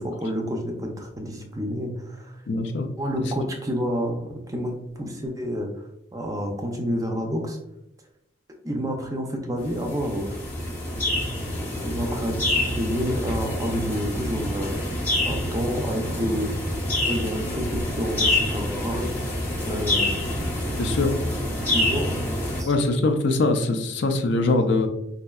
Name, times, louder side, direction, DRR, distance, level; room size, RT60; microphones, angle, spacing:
voice 1, 0.0-2.4 3.0-5.7 6.1-7.6 8.6-10.4 11.8-14.8 15.2-16.5 17.1-19.1 19.7-20.6 21.6-22.2 22.6-22.7, equal, 15° right, 2 dB, 0.4 m, -29 dB
voice 2, 2.5-2.9 20.8-21.1 22.7-24.9, left 2 dB, 60° left, 5 dB, 0.4 m, -22 dB
sound 1, 9.6-22.6, left 1 dB, 10° left, 0.8 m, -27 dB
4.2 x 2.7 x 2.3 m, 0.83 s
head